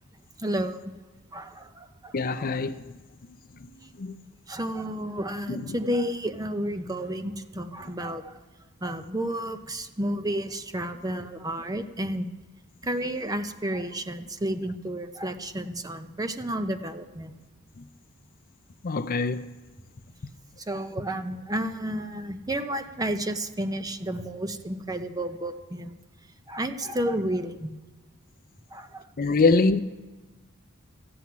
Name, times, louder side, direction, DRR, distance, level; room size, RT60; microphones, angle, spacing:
voice 1, 0.4-0.9 1.3-2.1 4.5-8.3 8.8-12.3 12.8-17.3 20.7-25.9 26.5-27.8 28.7-29.0, right 1 dB, 15° right, 0.7 m, -31 dB
voice 2, 2.1-2.9 4.0-4.2 5.5-5.8 17.8-17.9 18.8-19.5 29.2-29.8, left 3 dB, 40° left, 0.5 m, -24 dB
14.0 x 7.7 x 9.4 m
head